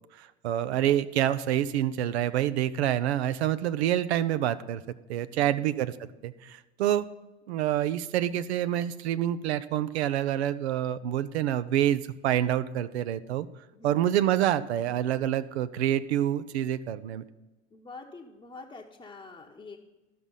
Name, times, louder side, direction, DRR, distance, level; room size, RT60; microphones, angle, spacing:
voice 1, 0.2-4.8 5.1-7.0 7.5-13.5 13.8-17.2, right 11 dB, 65° right, 14 dB, 0.6 m, -27 dB
voice 2, 13.7-14.1 17.7-19.8, left 3 dB, 15° left, -4 dB, 1.0 m, -46 dB
12.5 x 6.0 x 5.5 m, 1.1 s
figure-of-eight pair, 80°, 35 cm